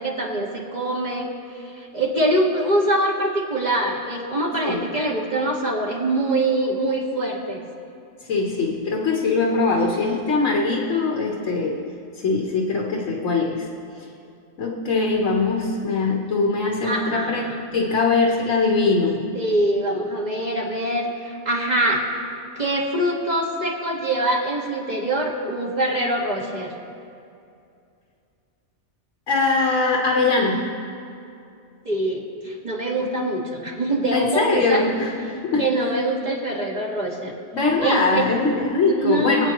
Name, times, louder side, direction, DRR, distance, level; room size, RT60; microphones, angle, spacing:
voice 1, 0.0-7.6 16.8-17.6 19.3-22.1 22.6-26.7 31.9-34.9 35.6-37.3 37.8-38.3 38.9-39.5, right 1 dB, 35° right, -2 dB, 1.8 m, -24 dB
voice 2, 8.3-11.8 12.2-13.7 14.6-19.2 29.3-30.6 34.1-35.6 37.5-39.5, left 3 dB, 75° left, 0 dB, 1.4 m, -22 dB
24.5 x 8.8 x 3.0 m, 2.5 s
omnidirectional pair, 1.3 m